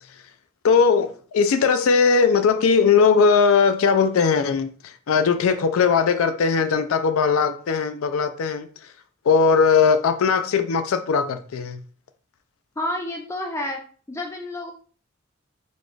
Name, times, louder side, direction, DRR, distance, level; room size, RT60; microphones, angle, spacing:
voice 1, 0.6-8.7 9.2-11.8, left 5 dB, 85° left, 0.4 m, -19 dB
voice 2, 12.8-13.8 14.1-14.7, left 1 dB, 15° left, 0.4 m, -29 dB
4.2 x 3.2 x 2.3 m
head